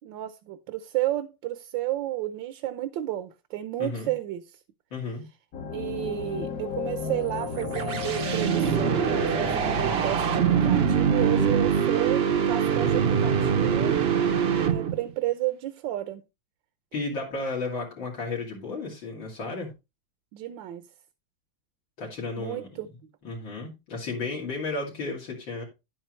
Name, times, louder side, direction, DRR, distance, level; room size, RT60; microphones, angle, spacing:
voice 1, 0.0-4.6 5.7-14.0 14.6-16.2 20.3-20.9 22.4-22.9, right 14 dB, 80° right, 1.4 m, -32 dB
voice 2, 3.8-4.1 4.9-5.2 16.9-19.7 22.0-22.9 23.2-25.6, left 3 dB, 85° left, 3.4 m, -33 dB
sound 1, 5.5-11.6, left 5 dB, 55° left, 1.2 m, -33 dB
sound 2, 7.3-15.1, right 7 dB, 55° right, 0.6 m, -24 dB
10.5 x 8.8 x 3.1 m
omnidirectional pair, 2.0 m